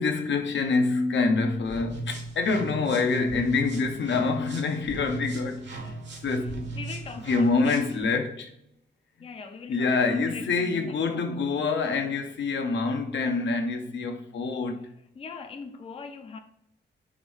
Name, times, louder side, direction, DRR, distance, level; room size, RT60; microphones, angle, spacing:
voice 1, 0.0-5.9 6.2-6.6 7.3-8.5 9.7-14.9, left 4 dB, 75° left, 0.7 m, -26 dB
sound 1, 1.6-8.0, right 3 dB, 70° right, 1.1 m, -37 dB
voice 2, 6.7-8.2 9.2-11.2 15.2-16.4, left 5 dB, 30° left, 0.4 m, -41 dB
4.9 x 2.6 x 3.5 m
wide cardioid pair, 120°, 19 cm